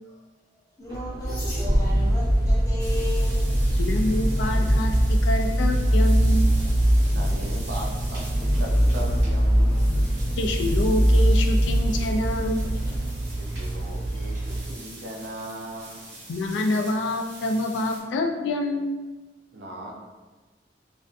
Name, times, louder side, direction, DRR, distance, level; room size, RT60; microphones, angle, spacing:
voice 1, 0.0-3.7, left 1 dB, 20° left, -6 dB, 0.5 m, -37 dB
sound 1, 0.9-13.0, equal, 25° right, 0.6 m, -22 dB
sound 2, 1.2-14.7, right 2 dB, 45° left, 0.9 m, -31 dB
sound 3, 2.8-18.0, right 2 dB, 85° right, 1.0 m, -44 dB
voice 2, 3.8-5.0 5.2-6.5 10.4-12.6 16.3-18.9, left 1 dB, 80° left, 3 dB, 0.3 m, -26 dB
voice 3, 7.1-9.9 13.4-16.0 19.5-19.9, right 1 dB, 65° right, -2 dB, 0.5 m, -38 dB
2.5 x 2.2 x 2.4 m, 1.2 s
head